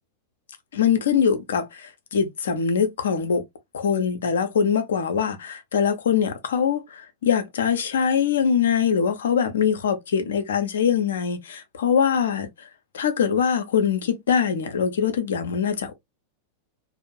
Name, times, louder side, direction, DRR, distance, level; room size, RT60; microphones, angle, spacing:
voice 1, 0.7-3.4 3.7-12.7 12.9-15.9, left 7 dB, 65° left, 0.5 m, -23 dB
2.5 x 2.0 x 2.9 m
figure-of-eight pair, 90°, 0 cm